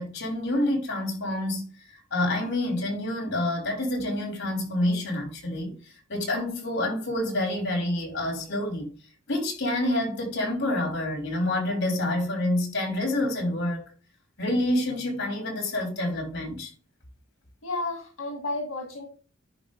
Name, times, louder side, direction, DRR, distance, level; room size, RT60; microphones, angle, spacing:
voice 1, 0.0-5.7 6.1-8.9 9.3-13.9 14.4-16.7, left 1 dB, 60° left, 3.1 m, -28 dB
voice 2, 17.6-19.1, left 2 dB, 75° left, 1.6 m, -32 dB
10.5 x 4.2 x 3.7 m
head